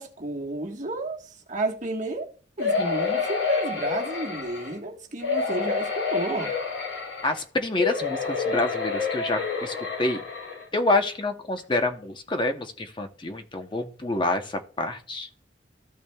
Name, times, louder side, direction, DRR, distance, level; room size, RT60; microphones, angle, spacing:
voice 1, 0.0-2.3 2.6-6.6, right 2 dB, 40° right, 1.3 m, -31 dB
sound 1, 2.6-4.7 5.2-7.4 7.8-10.6 11.2-11.3 11.6-11.7, left 5 dB, 80° left, 3.3 m, -28 dB
voice 2, 7.2-10.2 10.7-15.3, left 2 dB, 25° left, 0.8 m, -27 dB
14.0 x 5.9 x 2.3 m
head